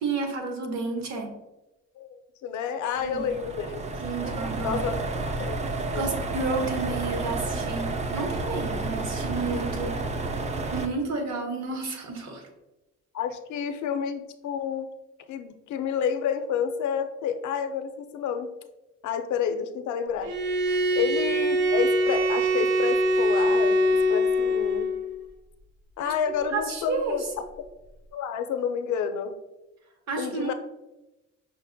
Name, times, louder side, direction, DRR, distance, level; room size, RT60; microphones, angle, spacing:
voice 1, 0.0-1.3 3.0-3.3 4.0-4.8 5.9-9.9 10.7-12.4 20.7-20.8 26.0-27.2 30.1-30.5, right 4 dB, 60° right, 3 dB, 0.9 m, -31 dB
voice 2, 2.0-4.0 4.6-5.1 5.3-5.6 5.9-6.2 13.1-14.9 15.3-18.5 19.0-20.3 20.9-24.9 26.0-27.3 28.1-29.4 30.2-30.5, left 7 dB, 75° left, 8 dB, 0.5 m, -30 dB
sound 1, 3.0-10.9, right 3 dB, 25° right, 0.3 m, -31 dB
Bowed string instrument, 20.2-25.0, equal, 90° right, 0.6 m, -23 dB
5.6 x 2.1 x 2.6 m, 1.0 s
cardioid pair, 90°, 30 cm